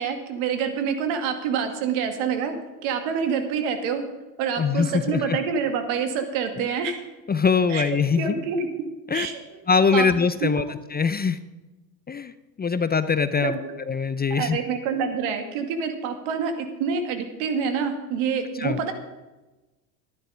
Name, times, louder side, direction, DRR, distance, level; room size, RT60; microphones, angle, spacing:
voice 1, 0.0-2.5 2.8-4.0 4.4-7.0 7.7-7.9 8.2-8.7 9.1-9.6 9.9-10.1 10.4-10.7 13.4-13.6 14.3-18.9, right 6 dB, 70° right, 7 dB, 2.3 m, -27 dB
voice 2, 4.6-5.4 7.3-8.3 9.1-9.3 9.7-10.6 10.9-11.4 12.1-12.3 12.6-13.5 13.9-14.6 18.6-18.8, left 5 dB, 20° left, 13 dB, 0.6 m, -22 dB
13.0 x 11.0 x 5.1 m, 1.1 s
supercardioid pair, 85°, 50 cm